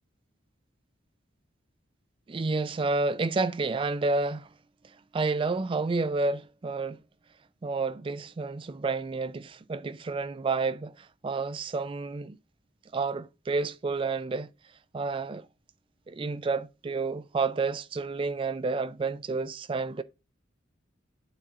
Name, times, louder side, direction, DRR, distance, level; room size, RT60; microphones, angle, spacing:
voice 1, 2.3-4.5 5.1-7.0 7.6-12.4 12.9-14.5 14.9-15.5 16.1-20.0, right 3 dB, 25° right, 0.3 m, -30 dB
12.0 x 4.2 x 2.4 m
head